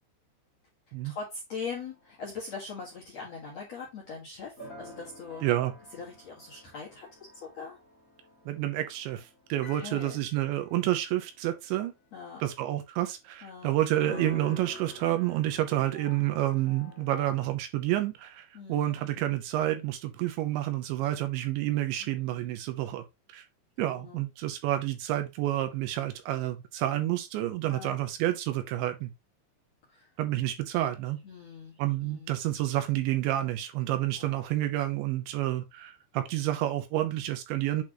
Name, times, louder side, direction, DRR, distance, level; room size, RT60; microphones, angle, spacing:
voice 1, 1.0-5.4 6.0-7.8 9.8-10.2 12.1-12.4 13.4-13.7 15.8-16.0 18.5-19.2 22.0-22.6 23.8-24.2 27.7-28.0 29.9-30.1 31.2-32.4 34.2-34.4, left 5 dB, 55° left, 1.9 m, -42 dB
sound 1, 1.7-12.0 12.5-12.6 14.0-17.5, left 1 dB, 35° left, 1.0 m, -49 dB
voice 2, 5.4-5.7 8.5-11.9 12.4-23.5 23.8-29.1 30.2-31.2 31.8-37.8, right 14 dB, 80° right, 3.0 m, -29 dB
8.5 x 4.2 x 3.0 m
omnidirectional pair, 5.5 m